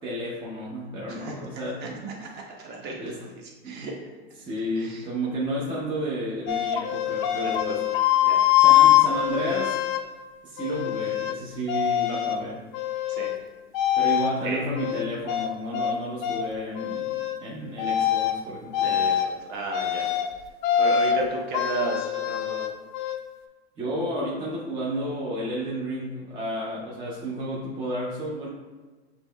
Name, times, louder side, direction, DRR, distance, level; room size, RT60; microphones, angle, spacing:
voice 1, 0.0-2.1 3.0-3.2 3.6-3.8 4.4-7.8 8.6-9.8 10.4-12.6 14.0-19.0 23.8-28.5, equal, 15° right, -5 dB, 0.5 m, -32 dB
voice 2, 2.2-3.9 4.7-5.0 7.4-8.4 13.1-13.3 14.4-14.6 18.8-20.1 20.8-22.7, right 2 dB, 30° right, -1 dB, 0.9 m, -34 dB
sound 1, 6.5-10.0 10.6-11.4 11.7-12.4 12.7-13.4 13.7-14.3 14.8-16.0 16.2-16.4 16.8-17.4 17.8-18.4 18.7-19.3 19.7-20.3 20.6-21.2 21.5-23.2, left 11 dB, 45° left, 0.4 m, -23 dB
7.1 x 3.0 x 2.2 m, 1.3 s
supercardioid pair, 145°, 32 cm